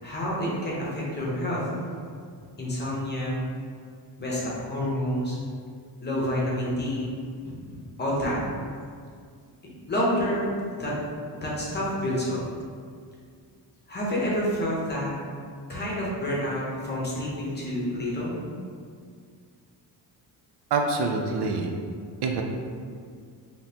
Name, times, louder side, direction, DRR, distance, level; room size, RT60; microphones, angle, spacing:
voice 1, 0.0-1.6 2.6-3.4 4.2-5.4 6.0-7.1 7.4-8.4 9.9-10.5 10.8-11.0 11.3-12.4 13.9-15.1 15.7-18.4, equal, 25° left, -5 dB, 0.7 m, -28 dB
voice 2, 20.7-21.7 22.2-22.4, right 4 dB, 65° right, 2 dB, 0.5 m, -25 dB
5.1 x 2.8 x 2.8 m, 2.1 s
wide cardioid pair, 180°, 43 cm